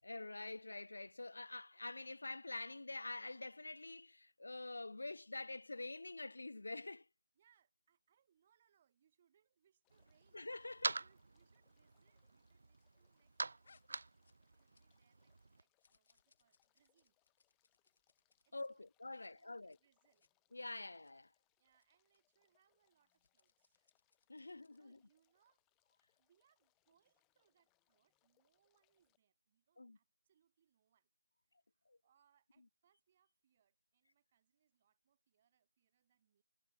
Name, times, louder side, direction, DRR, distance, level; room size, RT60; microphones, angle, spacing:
voice 1, 0.0-7.1 10.3-11.0 18.5-19.8 20.5-21.3 24.3-25.0 29.8-30.0 31.9-32.0, left 2 dB, 75° left, 0.7 m, -47 dB
voice 2, 7.3-10.5 10.9-14.1 14.4-17.2 18.4-18.9 19.1-20.3 21.6-24.0 24.4-25.6 26.2-31.1 31.4-36.4, right 9 dB, 20° right, 5.5 m, -79 dB
sound 1, 9.8-29.2, left 25 dB, 10° left, 4.2 m, -84 dB
sound 2, 9.9-15.6, right 3 dB, 60° right, 0.3 m, -46 dB
sound 3, 13.6-15.1 15.4-18.7 19.1-19.3 19.6-19.8 20.1-20.3 20.7-21.1 21.7-21.9 22.1-22.2 23.0-24.9, left 4 dB, 45° left, 3.5 m, -74 dB
figure-of-eight pair, 170°, 0 cm